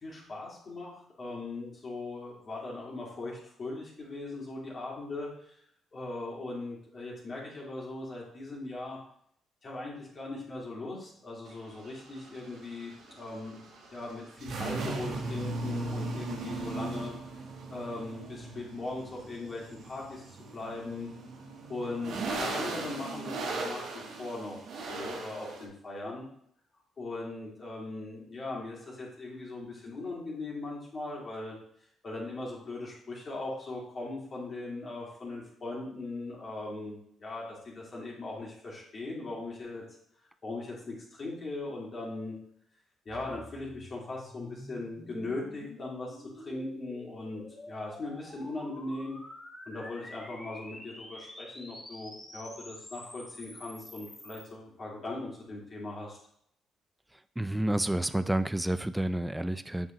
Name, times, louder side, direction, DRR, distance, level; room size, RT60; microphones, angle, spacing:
voice 1, 0.0-5.6 5.9-9.0 9.6-13.6 13.9-17.1 17.7-21.1 21.7-26.2 27.0-31.5 32.0-39.8 40.4-42.4 43.1-49.2 49.7-56.2, left 2 dB, 45° left, -4 dB, 2.2 m, -39 dB
sound 1, 11.5-25.6, right 3 dB, 75° right, 1.2 m, -38 dB
sound 2, 43.1-54.4, left 1 dB, 20° left, 2.3 m, -49 dB
voice 2, 57.4-59.9, right 1 dB, 10° right, 13 dB, 0.3 m, -29 dB
7.5 x 5.3 x 3.0 m, 0.69 s
cardioid pair, 90°, 0 cm